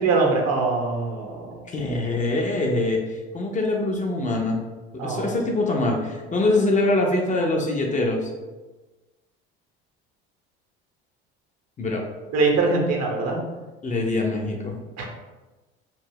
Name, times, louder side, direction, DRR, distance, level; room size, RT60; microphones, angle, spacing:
voice 1, 0.0-1.6 5.0-5.3 12.3-13.4 15.0-15.1, right 3 dB, 60° right, 0 dB, 0.8 m, -22 dB
voice 2, 1.7-4.6 5.0-8.3 11.8-12.0 13.8-14.8, left 2 dB, 25° left, 0 dB, 0.5 m, -24 dB
2.4 x 2.0 x 3.3 m, 1.2 s
hypercardioid pair, 70°, 30 cm